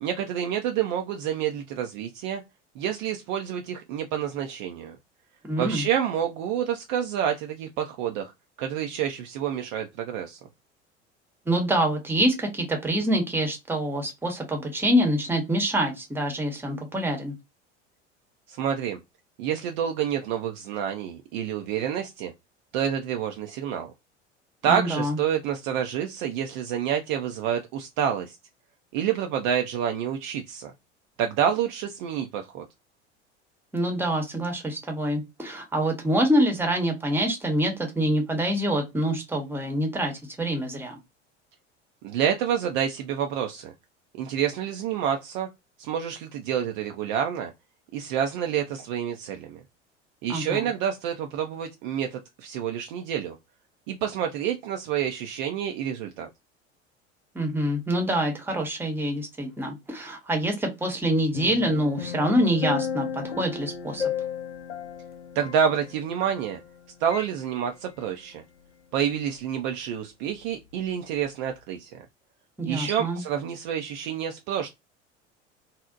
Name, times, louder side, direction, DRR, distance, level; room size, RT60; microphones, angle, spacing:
voice 1, 0.0-2.4 2.8-5.0 5.6-8.3 8.6-10.4 18.5-19.0 19.4-22.3 22.7-23.9 24.6-28.4 28.9-30.7 31.2-32.6 42.0-43.7 44.2-45.5 45.8-47.5 47.9-49.6 50.2-53.4 53.9-56.3 65.4-66.6 67.0-68.4 68.9-72.1 72.6-74.7, right 9 dB, 45° right, 0.4 m, -28 dB
voice 2, 5.4-5.9 11.5-17.3 24.7-25.2 33.7-40.1 40.4-41.0 50.3-50.6 57.3-64.1 72.6-73.2, equal, 5° right, 0.8 m, -26 dB
sound 1, 61.3-66.8 67.1-67.3, left 7 dB, 80° left, 0.5 m, -34 dB
2.7 x 2.0 x 2.3 m
figure-of-eight pair, 75°, 35 cm